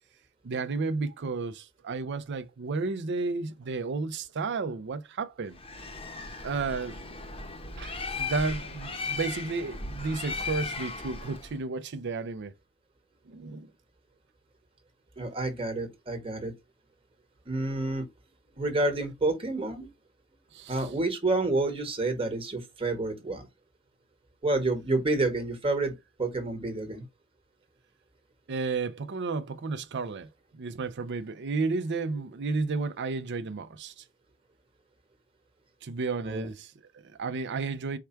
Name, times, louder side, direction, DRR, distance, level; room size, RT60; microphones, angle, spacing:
voice 1, 0.4-5.6 6.4-7.0 7.8-12.5 13.3-13.7 20.5-20.9 28.5-34.0 35.8-38.0, right 4 dB, 55° right, 0.5 m, -32 dB
Bird, 5.5-11.6, left 4 dB, 25° left, 0.8 m, -37 dB
voice 2, 15.2-16.5 17.4-18.1 18.6-19.9 20.7-23.5 24.4-27.0 36.2-36.5, right 2 dB, 25° right, 1.3 m, -29 dB
4.7 x 2.3 x 4.3 m
head